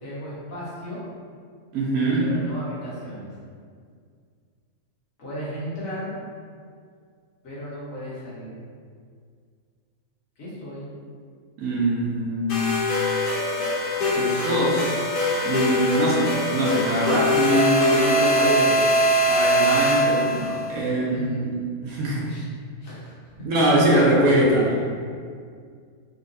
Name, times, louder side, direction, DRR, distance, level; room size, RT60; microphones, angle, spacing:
voice 1, 0.0-1.0 2.2-3.3 5.2-6.2 7.4-8.5 10.4-10.9 21.1-21.5 22.3-22.4 22.8-23.1 24.6-24.8, equal, 65° left, -9 dB, 1.5 m, -35 dB
voice 2, 1.7-2.3 11.6-12.9 14.1-15.0 15.4-18.9 19.2-21.5 21.8-22.3 23.4-24.7, right 1 dB, 75° right, -4 dB, 1.1 m, -23 dB
sound 1, 12.5-20.6, equal, 90° left, 1.5 m, -22 dB
3.8 x 3.0 x 2.6 m, 2.1 s
omnidirectional pair, 1.5 m